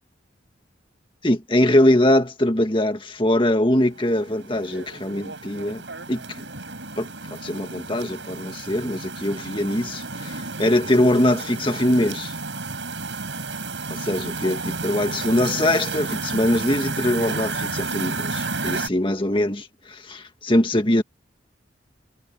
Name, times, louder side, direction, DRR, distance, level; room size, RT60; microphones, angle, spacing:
voice 1, 1.2-5.8 6.1-6.4 7.0-7.1 7.4-12.3 13.9-21.0, left 1 dB, 25° left, 1.9 m, -22 dB
sound 1, 3.8-18.9, right 3 dB, 75° right, 6.9 m, -32 dB
head